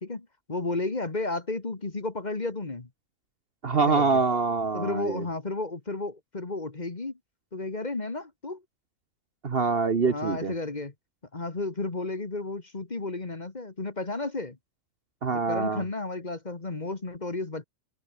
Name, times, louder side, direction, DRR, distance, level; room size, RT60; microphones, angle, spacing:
voice 1, 0.0-2.9 3.7-4.2 4.7-7.2 7.5-8.6 10.0-10.9 11.3-14.6 15.3-17.6, left 3 dB, 30° left, 1.7 m, -33 dB
voice 2, 3.6-5.2 9.4-10.5 15.2-15.8, right 4 dB, 45° right, 1.3 m, -25 dB
omnidirectional pair, 1.4 m